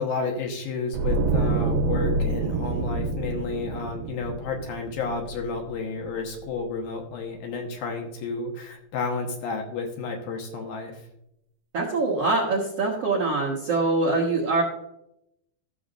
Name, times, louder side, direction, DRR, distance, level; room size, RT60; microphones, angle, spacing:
voice 1, 0.0-11.0, left 4 dB, 70° left, 2 dB, 2.7 m, -31 dB
sound 1, 0.9-6.0 6.3-6.5, right 3 dB, 85° right, 2.6 m, -27 dB
voice 2, 11.7-14.6, right 3 dB, 60° right, -4 dB, 1.6 m, -24 dB
15.0 x 6.9 x 2.5 m, 0.78 s
omnidirectional pair, 4.6 m